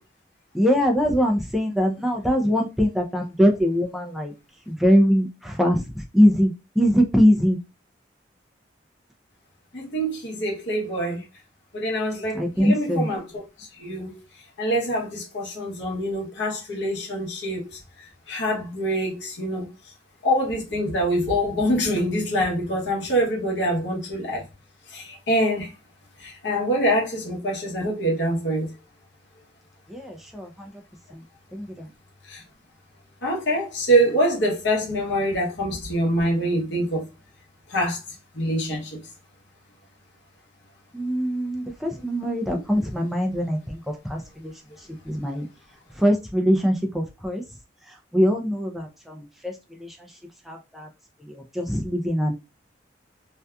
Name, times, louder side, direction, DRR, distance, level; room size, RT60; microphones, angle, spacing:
voice 1, 0.5-4.3 4.7-7.6 12.3-13.1 29.9-30.7 31.1-31.2 31.5-31.9 40.9-44.5 44.8-45.4 46.0-47.4 47.9-50.0 50.5-50.9 51.2-52.3, equal, ahead, 0.4 m, -22 dB
voice 2, 9.7-11.2 11.7-14.2 14.6-17.8 18.3-19.7 20.2-24.4 24.9-25.7 26.2-28.7 32.2-32.4 33.2-37.1 37.7-38.0 38.3-39.0, equal, 70° left, 0.9 m, -25 dB
2.7 x 2.3 x 2.2 m
head